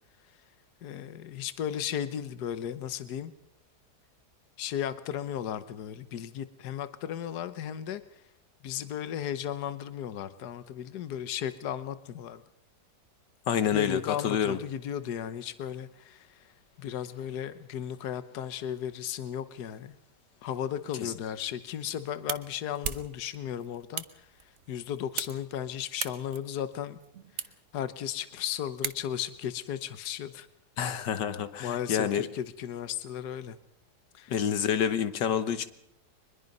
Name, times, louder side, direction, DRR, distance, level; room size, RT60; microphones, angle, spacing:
voice 1, 0.8-3.3 4.6-8.0 8.6-12.4 13.7-16.3 16.8-19.9 20.4-24.3 24.7-27.0 27.7-30.5 31.6-33.6 34.1-34.3, left 9 dB, 70° left, 12 dB, 1.5 m, -35 dB
voice 2, 13.5-14.6 21.0-21.1 30.8-32.3 34.3-35.7, left 8 dB, 85° left, 11 dB, 1.8 m, -28 dB
sound 1, 21.6-29.4, right 7 dB, 50° right, 1.2 m, -41 dB
23.5 x 21.5 x 5.4 m, 0.78 s
omnidirectional pair, 1.8 m